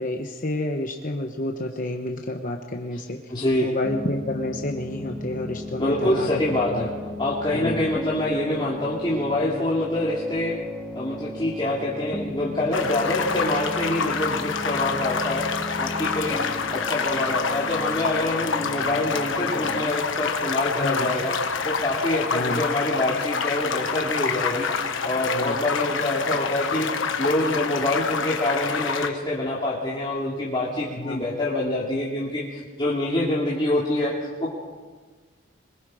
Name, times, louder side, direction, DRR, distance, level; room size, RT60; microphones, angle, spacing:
voice 1, 0.0-3.3 3.6-6.4 6.7-6.9 7.5-7.8 20.7-21.1 22.3-22.6 25.3-25.6 30.9-31.3, left 1 dB, 40° left, 3 dB, 1.1 m, -29 dB
voice 2, 3.3-3.7 5.8-6.9 7.2-10.6 10.9-15.5 15.8-16.4 16.7-21.3 21.6-26.9 27.2-34.5, left 1 dB, 25° left, -6 dB, 2.6 m, -26 dB
sound 1, 3.8-19.9, left 1 dB, 5° left, 1.2 m, -36 dB
sound 2, 12.7-29.1, left 5 dB, 70° left, 1.3 m, -27 dB
24.5 x 22.0 x 5.0 m, 1.4 s
head